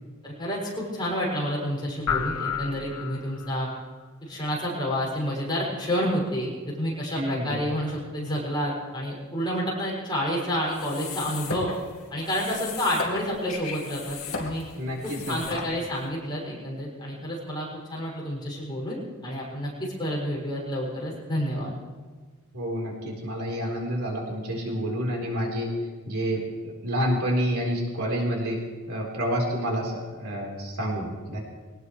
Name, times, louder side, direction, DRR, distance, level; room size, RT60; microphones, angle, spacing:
voice 1, 0.2-3.7 4.2-11.7 12.1-14.6 15.0-21.7, equal, 20° left, -5 dB, 6.3 m, -29 dB
sound 1, 2.1-3.6, left 6 dB, 90° left, 0.8 m, -30 dB
voice 2, 7.1-7.6 14.8-15.4 22.5-25.7 26.1-28.6 28.9-31.4, equal, 75° right, -2 dB, 4.2 m, -28 dB
sound 2, 10.7-16.1, left 4 dB, 65° left, 2.5 m, -37 dB
23.0 x 18.5 x 3.3 m, 1.4 s
head